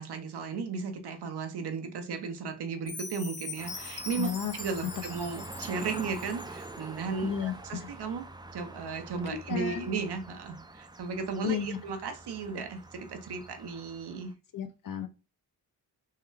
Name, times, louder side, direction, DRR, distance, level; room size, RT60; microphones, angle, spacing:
voice 1, 0.0-14.3, right 5 dB, 75° right, 0.8 m, -35 dB
Chime, 2.9-6.9, left 3 dB, 35° left, 1.0 m, -42 dB
sound 1, 3.6-14.3, right 2 dB, 10° right, 0.3 m, -46 dB
voice 2, 4.2-4.5 7.2-7.5 9.5-9.8 11.4-11.8 14.5-15.1, left 8 dB, 55° left, 0.6 m, -32 dB
3.7 x 2.2 x 3.2 m
cardioid pair, 70°, 40 cm